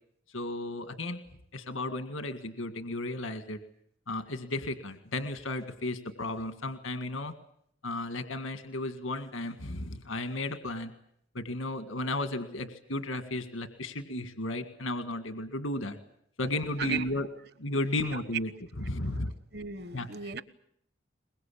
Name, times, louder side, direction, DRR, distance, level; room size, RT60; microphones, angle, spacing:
voice 1, 0.3-1.2 1.5-3.6 4.1-7.3 7.8-10.9 11.3-16.0 16.4-17.3 17.6-18.5 18.8-19.3 19.9-20.3, left 2 dB, 85° left, 1.9 m, -34 dB
voice 2, 19.5-20.4, right 5 dB, 55° right, 1.2 m, -35 dB
23.0 x 22.0 x 8.6 m
head